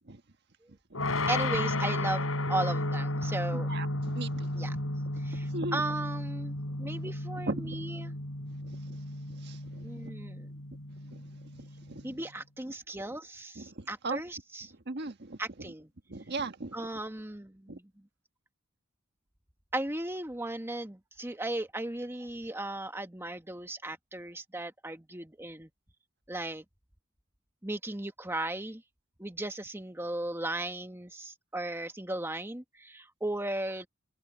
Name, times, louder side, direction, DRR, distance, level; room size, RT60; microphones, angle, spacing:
sound 1, 0.9-11.9, left 1 dB, 85° left, 5.2 m, -33 dB
voice 1, 1.3-3.7 4.5-4.8 5.2-8.1 9.8-10.5 12.0-14.7 15.4-15.9 16.7-17.9 19.7-25.7 26.3-26.6 27.6-28.8 29.2-33.9, right 1 dB, 10° right, 1.5 m, -36 dB
voice 2, 3.5-4.5 5.3-5.8 7.5-7.8 8.6-9.0 9.4-9.8 11.1-11.2 11.9-12.2 13.6-14.2 14.9-15.4 16.1-16.9 17.7-17.8, right 3 dB, 55° right, 1.5 m, -38 dB
head